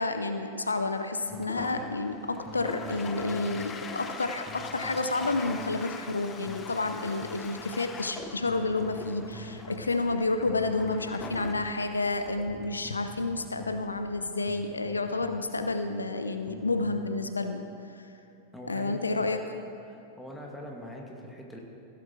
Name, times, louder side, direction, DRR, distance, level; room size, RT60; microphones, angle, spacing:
voice 1, 0.0-17.6 17.9-18.0 18.7-19.6, left 3 dB, 85° left, 7 dB, 0.6 m, -30 dB
Toilet flush, 1.3-14.4, left 4 dB, 25° left, 0.9 m, -43 dB
sound 1, 1.3-17.2, equal, 15° right, 1.5 m, -47 dB
voice 2, 18.5-19.3 19.9-21.6, equal, 5° left, -1 dB, 1.9 m, -42 dB
15.5 x 7.3 x 4.4 m, 2.9 s
figure-of-eight pair, 95°, 0 cm